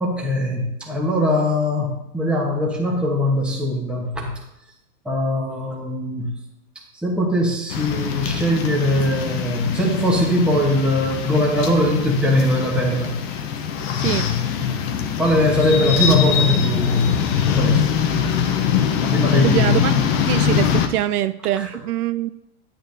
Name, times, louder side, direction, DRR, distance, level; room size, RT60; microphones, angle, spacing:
voice 1, 0.0-4.3 5.0-6.3 7.0-13.1 15.2-17.2 17.4-17.8 19.0-19.8 21.6-21.7, left 1 dB, ahead, -2 dB, 1.0 m, -21 dB
sound 1, 7.7-20.9, left 8 dB, 30° left, 0.7 m, -22 dB
voice 2, 14.0-14.3 19.4-20.0 20.3-22.3, right 13 dB, 70° right, 13 dB, 0.5 m, -23 dB
10.0 x 9.4 x 2.6 m, 0.87 s
supercardioid pair, 155°, 47 cm